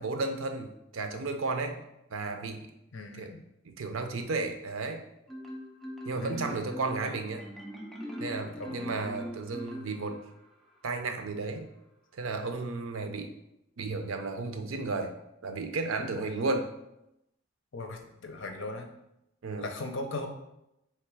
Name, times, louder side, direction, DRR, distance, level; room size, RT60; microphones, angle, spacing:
voice 1, 0.0-1.8 2.1-2.7 3.1-3.3 3.6-5.0 6.1-7.4 8.2-10.2 10.8-11.7 12.1-13.3 13.8-15.1 15.4-16.7 19.4-19.7, right 3 dB, 90° right, 6 dB, 0.6 m, -33 dB
voice 2, 2.9-3.4 6.2-6.7 8.6-9.0 16.1-16.3 17.7-18.9 19.6-20.3, left 2 dB, 65° left, 4 dB, 0.7 m, -39 dB
Marimba xylophone, 5.3-10.4, equal, ahead, 0.5 m, -41 dB
3.5 x 2.9 x 4.7 m, 0.84 s
head